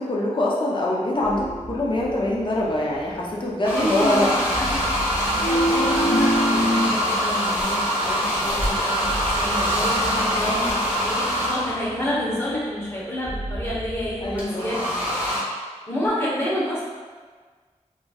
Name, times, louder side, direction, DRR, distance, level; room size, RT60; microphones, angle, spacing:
voice 1, 0.0-4.3 14.2-14.6, left 1 dB, 40° left, -4 dB, 0.6 m, -24 dB
sound 1, 1.1-2.5 5.4-6.9, equal, 80° left, 0.7 m, -24 dB
sound 2, 1.2-14.4, right 1 dB, 30° right, 0.4 m, -38 dB
sound 3, 3.6-12.0 14.4-15.4, equal, 10° right, 0.8 m, -24 dB
voice 2, 3.7-4.8 5.2-14.8 15.4-15.5 15.9-16.8, equal, 20° left, -7 dB, 1.0 m, -29 dB
3.0 x 2.6 x 2.3 m, 1.5 s
wide cardioid pair, 55°, 13 cm